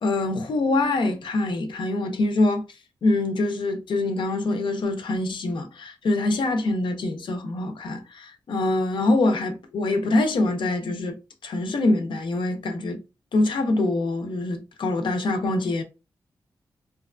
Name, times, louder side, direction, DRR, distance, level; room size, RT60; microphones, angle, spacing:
voice 1, 0.0-2.6 3.0-11.2 11.4-13.0 13.3-15.8, left 2 dB, 75° left, 0.5 m, -24 dB
2.7 x 2.2 x 2.4 m
cardioid pair, 70°, 8 cm